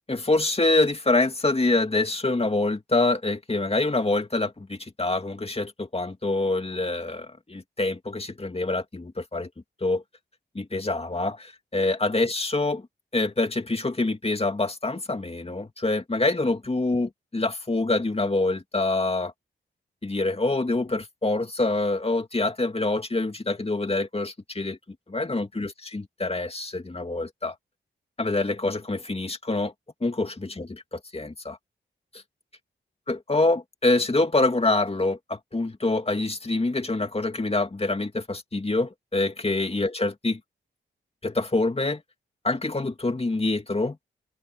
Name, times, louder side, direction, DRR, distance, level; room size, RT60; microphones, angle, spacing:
voice 1, 0.1-9.5 9.8-10.0 10.5-12.9 13.1-19.3 20.0-24.8 25.1-27.5 28.2-29.7 30.0-31.6 33.1-40.4 41.2-42.0 42.4-44.0, left 2 dB, 30° left, 2.6 m, -26 dB
cardioid pair, 55°, 21 cm